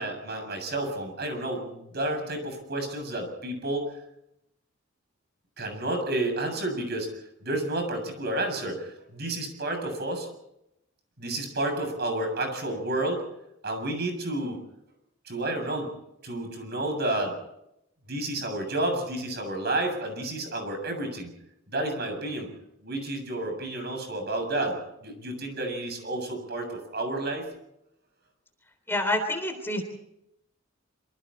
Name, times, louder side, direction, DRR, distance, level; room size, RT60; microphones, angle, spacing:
voice 1, 0.0-3.9 5.6-7.1 7.4-10.3 11.2-13.2 13.6-14.6 15.3-15.9 16.2-17.4 18.1-21.3 21.7-22.5 22.8-27.5, right 1 dB, 55° right, 4 dB, 7.4 m, -30 dB
voice 2, 28.9-29.8, left 1 dB, 10° left, 6 dB, 3.4 m, -27 dB
26.5 x 25.5 x 4.3 m, 0.81 s
head